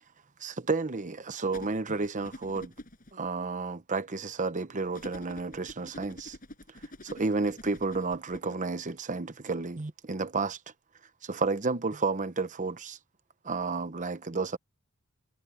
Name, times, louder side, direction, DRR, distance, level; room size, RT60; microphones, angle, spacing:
voice 1, 0.4-2.7 3.1-6.4 7.0-10.6 11.2-13.0 13.4-14.6, right 3 dB, 35° right, 0.9 m, -31 dB
sound 1, 1.5-3.1 4.9-8.5, left 1 dB, 40° left, 6.0 m, -46 dB
head